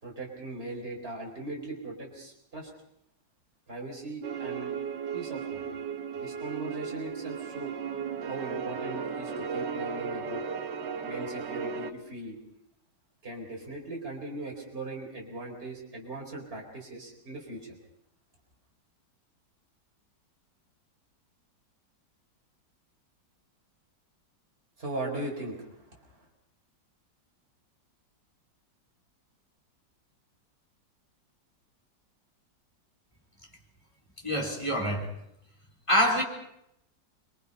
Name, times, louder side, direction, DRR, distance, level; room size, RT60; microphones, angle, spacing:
voice 1, 0.0-2.7 3.7-4.7 5.1-5.7 6.1-7.7 8.2-10.4 11.0-12.4 13.2-17.7 24.8-26.2, right 2 dB, 30° right, -1 dB, 4.9 m, -39 dB
sound 1, 4.2-11.9, right 6 dB, 70° right, 1.9 m, -35 dB
voice 2, 34.2-35.1 35.9-36.2, equal, 15° left, -1 dB, 4.1 m, -25 dB
26.5 x 23.5 x 5.6 m, 0.77 s
omnidirectional pair, 2.0 m